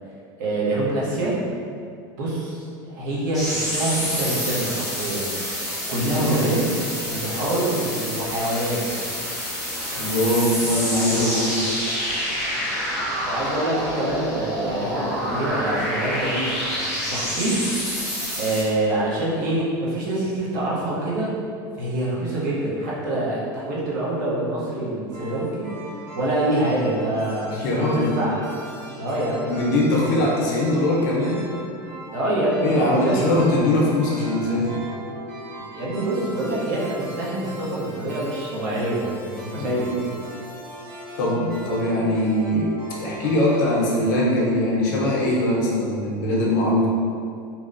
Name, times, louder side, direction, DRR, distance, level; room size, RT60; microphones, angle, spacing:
voice 1, 0.4-1.4 2.2-5.3 5.9-6.6 7.1-8.8 13.2-16.5 17.1-17.6 18.4-21.3 21.7-25.7 26.1-28.3 29.0-29.5 32.1-33.3 35.7-39.9, right 1 dB, 60° right, -6 dB, 0.7 m, -25 dB
sound 1, 3.3-18.6, equal, ahead, 0.6 m, -28 dB
voice 2, 6.1-6.5 10.0-11.5 27.5-28.2 29.5-31.5 32.6-34.8 39.6-39.9 41.2-46.9, left 1 dB, 60° left, -4 dB, 0.6 m, -22 dB
sound 2, 25.1-45.0, equal, 35° right, 1.1 m, -39 dB
2.8 x 2.0 x 2.4 m, 2.3 s
supercardioid pair, 170°, 11 cm